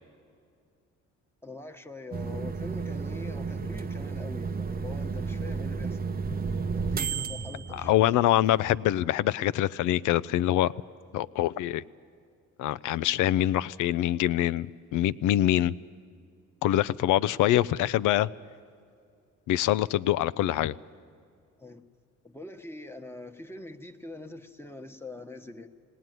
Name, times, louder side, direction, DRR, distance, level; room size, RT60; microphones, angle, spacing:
voice 1, 1.4-6.0 6.7-8.4 21.6-21.8 22.2-25.7, left 2 dB, 10° left, 5 dB, 1.2 m, -43 dB
sound 1, 2.1-8.5, right 5 dB, 30° right, 0.7 m, -32 dB
voice 2, 7.7-10.7 11.1-11.8 12.6-14.7 14.9-15.7 16.6-18.3 19.5-20.7, left 13 dB, 85° left, 17 dB, 0.5 m, -24 dB
19.5 x 18.5 x 9.3 m, 2.3 s
cardioid pair, 90°, 30 cm